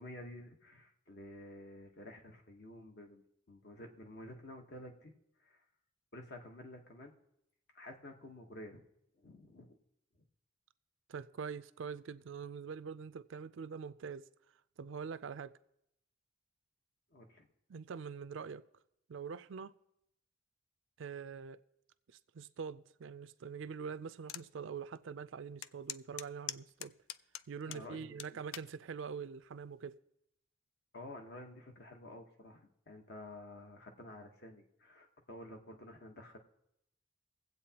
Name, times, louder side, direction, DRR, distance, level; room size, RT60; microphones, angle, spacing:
voice 1, 0.0-3.2 3.5-5.1 5.4-5.6 6.1-7.1 7.7-8.8 9.1-9.8 17.1-17.5 27.7-28.4 30.9-36.4, left 1 dB, 55° left, 1.1 m, -51 dB
voice 2, 11.1-14.3 14.8-15.6 17.7-18.7 19.1-19.7 21.0-21.6 22.1-26.9 27.5-30.0, right 6 dB, 70° right, 0.4 m, -44 dB
sound 1, 24.3-24.5 24.9-25.0 25.6-27.8 28.2-28.7 29.4-29.7, left 12 dB, 75° left, 0.3 m, -43 dB
23.5 x 8.1 x 2.9 m
head